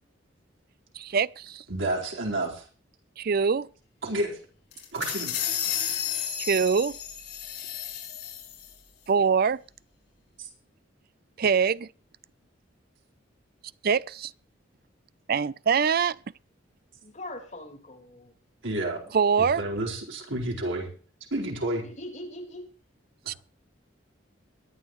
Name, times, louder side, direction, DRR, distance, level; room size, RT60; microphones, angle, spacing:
voice 1, 1.0-1.6 3.2-3.7 6.4-7.0 9.1-9.6 11.4-11.9 13.8-14.3 15.3-16.2 19.1-19.6 23.3-23.4, right 6 dB, 55° right, 0.5 m, -24 dB
voice 2, 1.7-2.6 4.0-4.4 4.9-5.3 10.4-10.5 18.6-19.0 19.4-20.9 21.3-21.8, right 1 dB, 85° right, 4.4 m, -30 dB
sound 1, 4.7-8.7, left 9 dB, 60° left, 5.2 m, -32 dB
voice 3, 17.0-18.3 19.0-19.1 21.8-22.7, left 1 dB, 40° left, 4.4 m, -41 dB
22.5 x 9.8 x 3.1 m
head